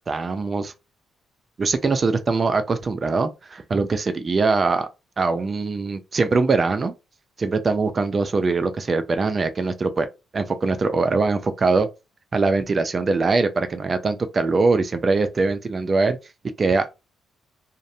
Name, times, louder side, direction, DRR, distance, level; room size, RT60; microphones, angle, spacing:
voice 1, 0.1-0.7 1.6-4.9 5.2-6.9 7.4-10.1 10.3-11.9 12.3-16.2 16.6-17.0, right 3 dB, 40° right, 0.3 m, -22 dB
2.5 x 2.0 x 2.6 m
cardioid pair, 85°, 0 cm